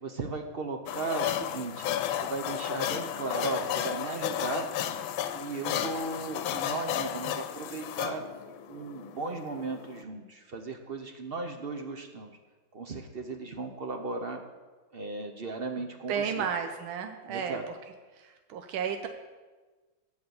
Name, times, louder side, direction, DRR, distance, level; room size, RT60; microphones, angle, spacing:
voice 1, 0.0-1.9 2.2-4.7 5.3-8.2 8.7-12.3 12.7-14.4 14.9-16.4 17.3-17.6, right 3 dB, 55° right, 5 dB, 0.6 m, -36 dB
sound 1, 0.9-10.0, left 10 dB, 80° left, 1.5 m, -33 dB
voice 2, 15.8-17.8 18.1-19.1, right 7 dB, 90° right, 6 dB, 1.6 m, -33 dB
15.5 x 5.5 x 7.0 m, 1.3 s
omnidirectional pair, 2.2 m